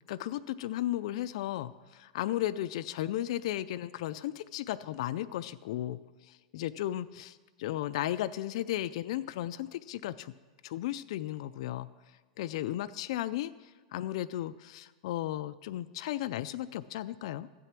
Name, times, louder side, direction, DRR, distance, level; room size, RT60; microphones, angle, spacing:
voice 1, 0.1-6.0 6.5-10.3 10.6-11.9 12.4-13.5 13.9-17.5, left 13 dB, 55° left, 13 dB, 0.3 m, -35 dB
12.0 x 8.3 x 5.9 m, 1.3 s
supercardioid pair, 165°, 4 cm